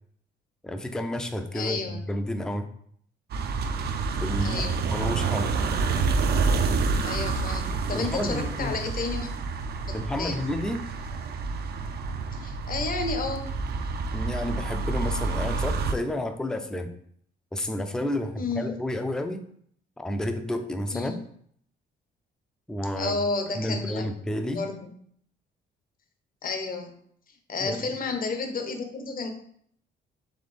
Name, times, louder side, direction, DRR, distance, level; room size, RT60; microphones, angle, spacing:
voice 1, 0.6-2.7 4.2-5.5 7.9-8.8 9.9-10.8 14.1-16.9 17.5-19.4 20.0-21.2 22.7-23.2 23.6-24.6 27.6-27.9, left 1 dB, 5° left, 7 dB, 0.4 m, -31 dB
voice 2, 1.5-2.1 4.4-4.8 7.0-9.3 9.9-10.4 12.3-13.5 18.4-18.8 20.9-21.2 23.0-24.1 24.5-24.9 26.4-26.9 27.5-29.3, left 3 dB, 45° left, 6 dB, 0.8 m, -31 dB
sound 1, 3.3-15.9, right 4 dB, 55° right, 0.5 m, -28 dB
4.1 x 3.3 x 3.2 m, 0.63 s
cardioid pair, 90°, 20 cm